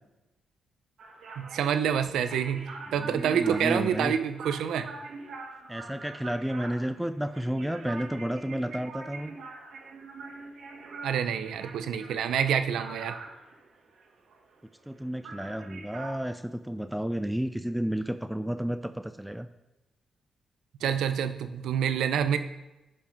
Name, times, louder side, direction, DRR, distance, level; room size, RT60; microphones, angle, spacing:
sound 1, 1.0-15.0 15.2-16.2, right 3 dB, 65° right, 1.8 m, -44 dB
voice 1, 1.4-4.9 11.0-13.2 20.8-22.4, right 8 dB, 85° right, 10 dB, 0.7 m, -27 dB
voice 2, 3.0-4.1 5.7-9.4 14.9-19.5, equal, 5° right, 10 dB, 0.4 m, -32 dB
12.0 x 5.5 x 5.3 m, 1.0 s
cardioid pair, 110°, 0 cm